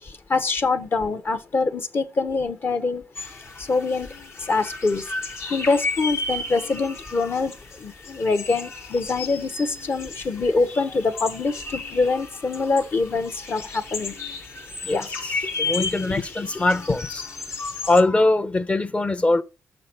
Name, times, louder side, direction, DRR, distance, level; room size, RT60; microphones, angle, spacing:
voice 1, 0.0-4.1 4.5-5.1 5.5-14.1 14.9-15.1 16.1-16.2, left 3 dB, 45° left, 1.0 m, -25 dB
sound 1, 3.2-18.0, left 3 dB, 65° left, 1.4 m, -34 dB
voice 2, 15.6-17.2 17.9-19.4, left 2 dB, 25° left, 0.6 m, -21 dB
6.7 x 5.4 x 4.5 m
cardioid pair, 70°, 5 cm